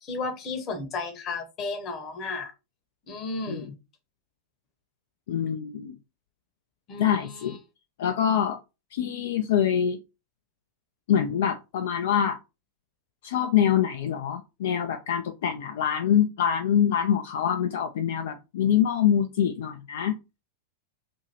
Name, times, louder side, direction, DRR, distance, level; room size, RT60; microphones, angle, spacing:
voice 1, 0.0-2.5 3.1-3.7 6.9-7.6, left 3 dB, 30° left, 0.8 m, -33 dB
voice 2, 5.3-6.0 7.0-7.6 8.0-8.6 8.9-10.0 11.1-12.4 13.2-20.2, left 9 dB, 55° left, 0.3 m, -25 dB
2.7 x 2.6 x 2.9 m
figure-of-eight pair, 90°, 0 cm